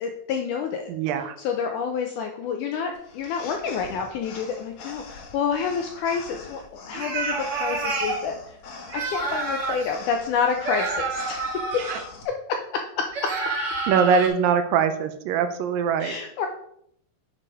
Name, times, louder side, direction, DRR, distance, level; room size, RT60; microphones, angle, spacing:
voice 1, 0.0-0.9 1.4-8.4 8.9-11.4 12.7-13.0 16.0-16.5, left 6 dB, 85° left, 4 dB, 1.8 m, -28 dB
voice 2, 0.9-1.4 11.9-12.0 13.9-16.2, right 6 dB, 80° right, 9 dB, 2.3 m, -22 dB
sound 1, 2.9-12.2, left 4 dB, 60° left, 1.8 m, -44 dB
sound 2, 6.9-8.2 8.9-9.9 10.6-12.1 13.1-14.3, right 3 dB, 45° right, 2.1 m, -28 dB
8.8 x 4.8 x 4.8 m, 0.70 s
omnidirectional pair, 4.3 m